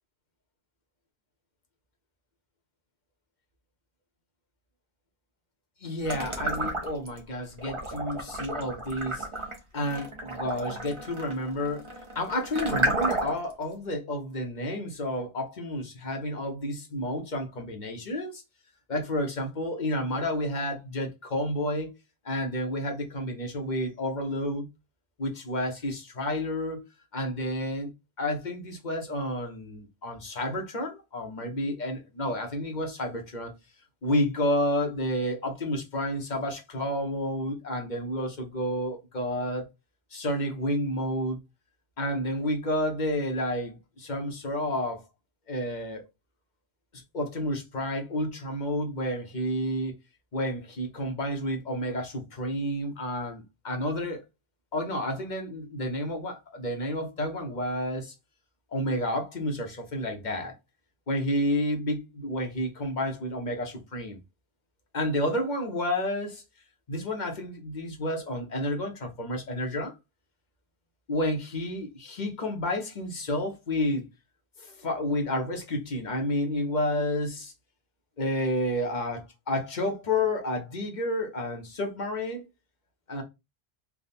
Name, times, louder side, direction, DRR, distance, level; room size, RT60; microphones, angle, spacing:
voice 1, 5.8-9.3 9.7-18.4 18.9-21.9 22.2-24.7 25.2-26.8 27.1-27.9 28.2-33.5 34.0-39.7 40.1-41.4 42.0-45.0 45.5-46.0 46.9-49.9 50.3-54.2 54.7-58.1 58.7-60.5 61.1-64.2 64.9-66.4 66.9-69.9 71.1-74.1 74.6-77.5 78.2-82.4 83.1-83.2, left 1 dB, 45° left, 1.0 m, -30 dB
sound 1, 6.0-7.2 7.6-13.5, right 1 dB, 30° right, 1.0 m, -32 dB
3.5 x 2.3 x 4.1 m
omnidirectional pair, 1.1 m